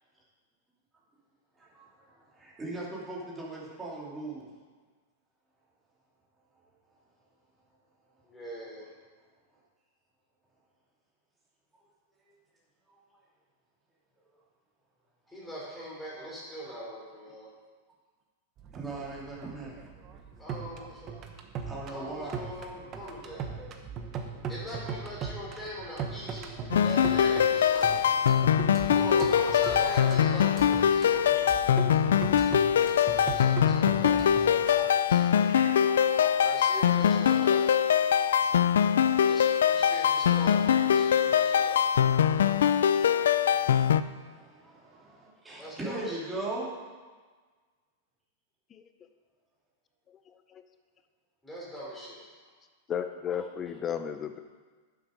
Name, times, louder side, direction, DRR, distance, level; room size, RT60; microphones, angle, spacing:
voice 1, 1.6-4.5 6.5-6.6 12.2-12.3 12.9-13.0 16.3-16.4 18.7-19.8 21.6-22.4 29.6-30.0 33.6-34.3 34.7-37.1 38.1-38.8 42.3-46.7, right 2 dB, 10° right, -5 dB, 2.8 m, -41 dB
voice 2, 8.3-8.9 15.3-17.5 20.4-21.2 21.8-23.5 24.5-28.0 28.9-31.5 33.0-34.1 34.4-35.6 36.4-37.7 39.2-41.8 45.6-46.2 51.4-52.2, equal, 5° left, -6 dB, 3.5 m, -41 dB
sound 1, 18.6-34.9, right 6 dB, 30° right, 1.0 m, -39 dB
sound 2, 26.7-44.0, left 9 dB, 90° left, 0.4 m, -23 dB
voice 3, 50.1-50.6 52.9-54.4, left 8 dB, 25° left, 9 dB, 0.6 m, -34 dB
11.5 x 7.6 x 5.2 m, 1.4 s
supercardioid pair, 145°, 0 cm